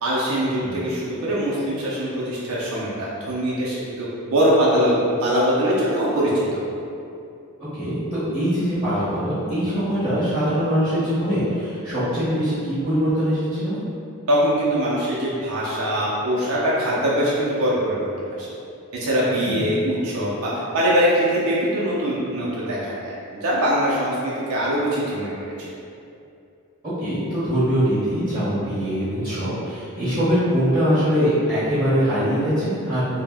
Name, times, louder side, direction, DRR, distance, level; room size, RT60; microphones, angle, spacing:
voice 1, 0.0-6.6 14.3-18.5 18.9-25.3, equal, 70° right, -7 dB, 0.5 m, -22 dB
voice 2, 7.7-13.8 19.4-19.6 27.0-33.2, equal, 20° right, -14 dB, 0.8 m, -22 dB
2.5 x 2.0 x 3.4 m, 2.6 s
head